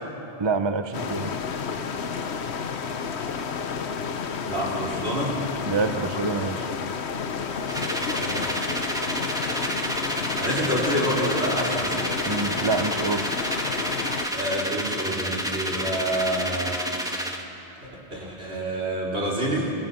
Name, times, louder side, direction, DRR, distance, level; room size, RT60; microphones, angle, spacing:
voice 1, 0.4-1.3 5.7-6.7 12.3-13.3, right 4 dB, 30° right, 8 dB, 0.8 m, -26 dB
sound 1, 0.9-14.3, left 6 dB, 85° left, 1.3 m, -31 dB
voice 2, 4.4-5.4 8.2-8.5 10.4-12.5 14.3-17.3 17.8-19.7, equal, 80° right, -3 dB, 4.7 m, -28 dB
sound 2, 7.7-17.4, equal, 5° right, 1.6 m, -30 dB
28.5 x 23.5 x 5.8 m, 3.0 s
omnidirectional pair, 1.1 m